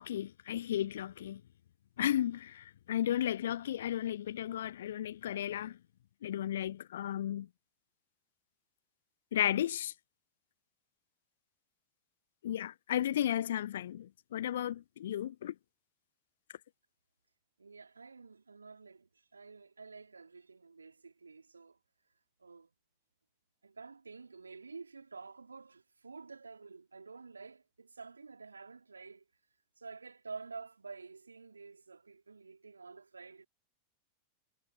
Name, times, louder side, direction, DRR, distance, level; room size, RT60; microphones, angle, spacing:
voice 1, 0.0-1.4 2.0-5.8 6.2-7.5 9.3-9.9 12.4-15.5, left 11 dB, 60° left, 0.4 m, -34 dB
voice 2, 17.6-21.8 22.4-22.7 23.6-29.3 29.8-33.4, right 4 dB, 75° right, 4.5 m, -50 dB
figure-of-eight pair, 90°, 0 cm